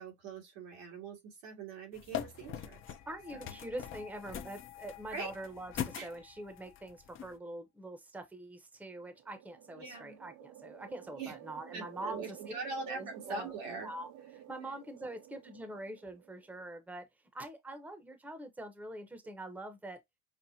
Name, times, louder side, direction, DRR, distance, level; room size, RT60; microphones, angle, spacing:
voice 1, 0.0-2.8 3.3-3.6 5.1-5.3 5.9-6.1 9.8-10.2 11.1-11.3 11.7-13.9, right 4 dB, 85° right, 1.9 m, -42 dB
sound 1, 1.9-7.4, left 9 dB, 35° left, 0.6 m, -43 dB
sound 2, 2.3-7.3, left 17 dB, 75° left, 0.9 m, -57 dB
voice 2, 3.1-12.4 12.9-13.5 13.8-14.1 14.5-17.1 17.3-20.0, right 1 dB, 5° right, 0.8 m, -44 dB
sound 3, 8.9-16.6, right 11 dB, 55° right, 0.5 m, -53 dB
5.7 x 2.1 x 2.7 m
supercardioid pair, 100°, 37 cm